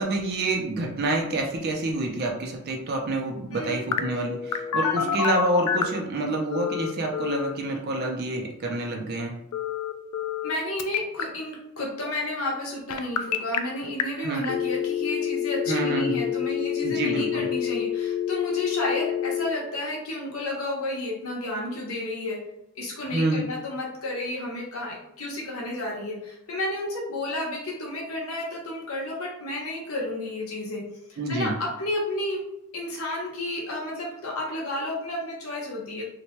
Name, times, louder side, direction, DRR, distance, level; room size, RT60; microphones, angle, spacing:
voice 1, 0.0-9.3 14.2-14.4 15.7-16.2 16.8-17.5 23.1-23.4 31.2-31.5, right 2 dB, 45° right, 1 dB, 0.5 m, -27 dB
voice 2, 3.5-3.8 4.8-5.1 10.4-22.4 22.8-30.8 31.1-32.4 32.7-36.0, left 1 dB, 70° left, -3 dB, 0.9 m, -31 dB
Telephone, 3.9-6.0 6.5-7.5 9.5-10.5 10.8-11.2 12.9-13.6 14.0-14.1 14.4-19.5, left 9 dB, 85° left, 0.3 m, -27 dB
2.8 x 2.2 x 3.0 m, 0.86 s
head